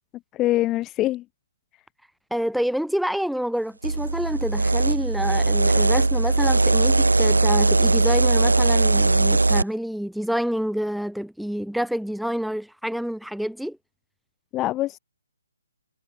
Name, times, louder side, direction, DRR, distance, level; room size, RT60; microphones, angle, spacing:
voice 1, 0.3-1.2 14.5-15.0, left 15 dB, 20° left, 0.6 m, -24 dB
voice 2, 2.3-13.8, equal, ahead, 1.5 m, -28 dB
sound 1, 3.8-9.6, right 3 dB, 80° right, 0.4 m, -19 dB
figure-of-eight pair, 135°, 0 cm